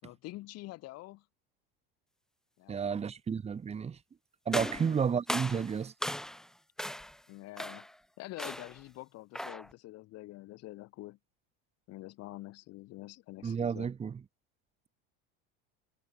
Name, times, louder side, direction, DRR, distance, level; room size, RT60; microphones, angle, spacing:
voice 1, 0.0-1.2 2.6-3.0 4.6-5.1 7.3-7.9 8.2-11.2 11.9-13.9, left 18 dB, 60° left, 5.8 m, -46 dB
voice 2, 2.7-4.0 4.4-5.9 13.4-14.2, right 6 dB, 20° right, 1.6 m, -32 dB
sound 1, 4.5-6.5 6.8-7.2 7.6-8.0 8.4-8.8 9.3-9.7, left 1 dB, ahead, 1.2 m, -37 dB
cardioid pair, 130°, 29 cm